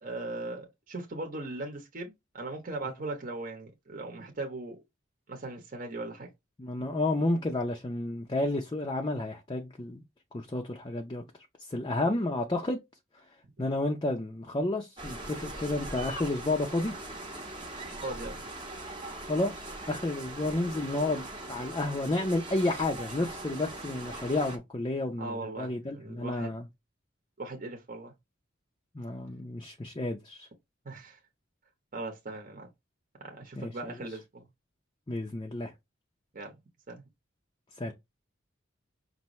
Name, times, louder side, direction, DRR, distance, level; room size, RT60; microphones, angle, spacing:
voice 1, 0.0-4.8 5.3-6.3 6.8-6.9 11.9-12.1 13.6-13.7 18.0-18.4 25.2-26.5 27.4-28.1 30.8-31.2 31.9-32.7 33.2-34.5 36.3-36.5 36.9-37.0, right 2 dB, 45° right, 1.0 m, -39 dB
voice 2, 6.6-10.0 10.3-11.2 11.7-12.8 13.6-17.0 19.2-26.6 28.9-30.5 33.6-33.7 35.1-35.7 37.8-37.9, left 2 dB, 25° left, 0.5 m, -31 dB
sound 1, 15.0-24.6, right 2 dB, 25° right, 0.9 m, -41 dB
5.5 x 2.6 x 3.1 m
head